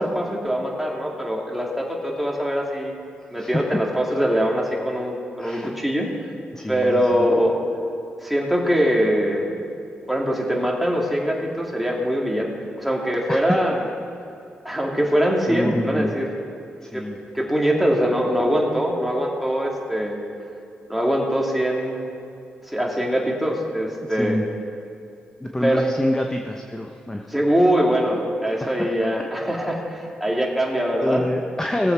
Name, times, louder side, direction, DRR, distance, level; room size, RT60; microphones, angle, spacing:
voice 1, 0.0-3.0 3.3-6.1 6.7-7.5 8.2-9.6 10.1-13.9 14.6-16.3 16.9-17.0 17.3-20.2 20.9-22.0 22.7-24.4 25.6-25.8 27.3-31.2, equal, ahead, -2 dB, 2.7 m, -22 dB
voice 2, 5.4-5.8 6.5-7.3 13.3-13.4 15.5-16.1 16.8-17.2 24.2-24.4 25.4-27.3 28.6-28.7 31.0-31.9, left 1 dB, 15° left, 3 dB, 0.9 m, -26 dB
18.5 x 7.8 x 4.7 m, 2.6 s
cardioid pair, 60°, 4 cm